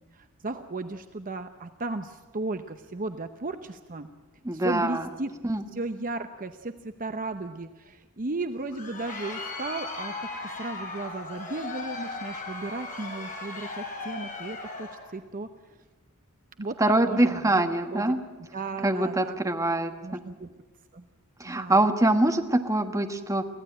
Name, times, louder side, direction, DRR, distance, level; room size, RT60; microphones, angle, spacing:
voice 1, 0.1-4.1 4.5-5.3 5.7-15.8 16.6-16.8 17.1-17.6 17.9-18.2 18.5-19.3 20.0-20.5 20.9-21.0 21.4-21.9, right 2 dB, 40° right, 8 dB, 0.8 m, -35 dB
voice 2, 4.4-5.0 5.4-5.6 16.8-18.2 18.8-20.2 21.4-23.5, right 1 dB, 15° right, 6 dB, 1.3 m, -24 dB
Crowd, 8.5-15.1, left 3 dB, 35° left, 5.1 m, -37 dB
24.5 x 16.0 x 8.9 m, 1.3 s
head